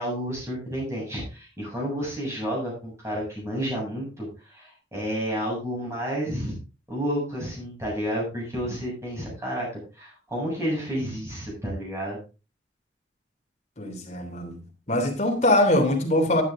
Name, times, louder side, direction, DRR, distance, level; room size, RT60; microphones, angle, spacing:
voice 1, 0.0-6.5 6.9-9.7 10.0-12.2, equal, 15° right, 7.4 m, -30 dB
voice 2, 13.8-14.6 14.9-16.4, left 1 dB, 40° left, 3.0 m, -22 dB
11.5 x 10.0 x 3.7 m
head